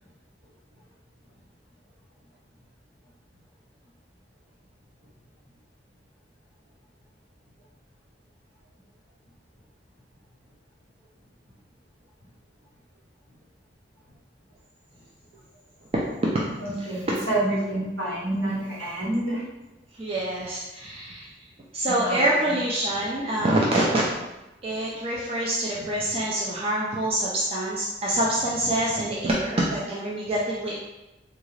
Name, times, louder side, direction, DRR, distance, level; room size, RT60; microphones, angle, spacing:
voice 1, 16.6-19.4 22.0-22.2, right 1 dB, 75° right, -7 dB, 1.5 m, -28 dB
voice 2, 20.0-21.3 21.7-24.0 24.6-30.7, right 1 dB, 35° right, -5 dB, 0.5 m, -25 dB
3.7 x 2.3 x 3.1 m, 0.99 s
head